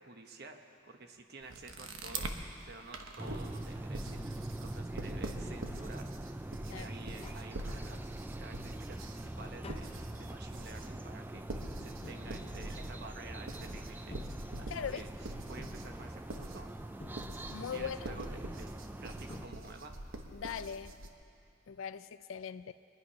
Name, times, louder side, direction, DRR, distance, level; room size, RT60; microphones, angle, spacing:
voice 1, 0.0-4.2 4.6-6.4 6.6-8.1 8.4-14.2 14.6-15.1 15.5-16.7 17.5-20.0, right 3 dB, 50° right, 5 dB, 1.1 m, -51 dB
sound 1, 1.4-2.4 2.9-21.1, right 2 dB, 90° right, 1.1 m, -45 dB
sound 2, 3.2-19.5, right 1 dB, 10° right, 0.3 m, -44 dB
Tap, 7.2-8.2 8.6-13.3 13.9-15.0 15.6-16.5 17.0-17.8 18.9-19.0 19.3-20.1 20.4-20.5, left 2 dB, 30° left, 0.7 m, -52 dB
voice 2, 14.7-15.1 17.5-18.2 20.3-21.0 21.7-22.7, left 7 dB, 80° left, 12 dB, 0.4 m, -40 dB
23.5 x 10.5 x 5.6 m, 2.6 s
head